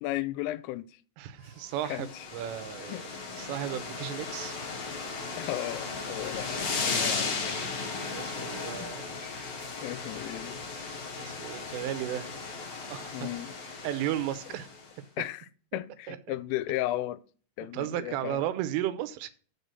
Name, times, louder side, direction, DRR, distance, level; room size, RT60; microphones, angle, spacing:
voice 1, 0.0-1.0 1.9-2.3 2.8-3.0 5.4-7.6 8.8-9.0 9.8-10.6 13.1-13.5 14.5-14.6 15.2-15.5 15.7-17.2 17.6-18.4, left 15 dB, 85° left, 3.1 m, -35 dB
voice 2, 1.2-3.1 3.3-4.6 7.0-7.3 8.0-9.1 11.2-12.4 12.8-13.3 13.8-14.7 16.1-16.4 17.6-19.3, right 12 dB, 85° right, 3.4 m, -34 dB
sound 1, 1.7-14.9, left 4 dB, 55° left, 1.9 m, -36 dB
7.2 x 6.8 x 6.3 m
omnidirectional pair, 5.6 m